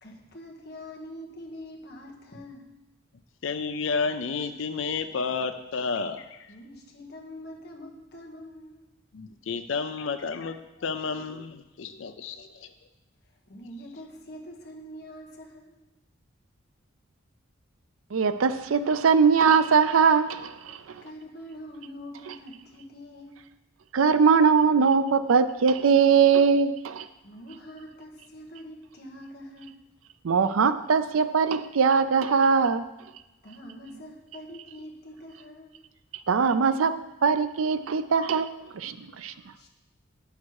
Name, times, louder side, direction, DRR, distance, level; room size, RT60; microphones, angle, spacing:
voice 1, 0.0-2.8 6.5-8.8 13.5-15.8 21.0-23.4 27.2-29.8 33.4-35.7 39.6-39.7, equal, 50° left, 1.5 m, -44 dB
voice 2, 3.4-6.4 9.1-12.7, left 5 dB, 70° left, 0.5 m, -31 dB
voice 3, 18.1-20.8 23.9-27.1 30.2-32.8 36.3-39.3, right 5 dB, 90° right, 0.5 m, -21 dB
9.7 x 6.5 x 4.8 m
head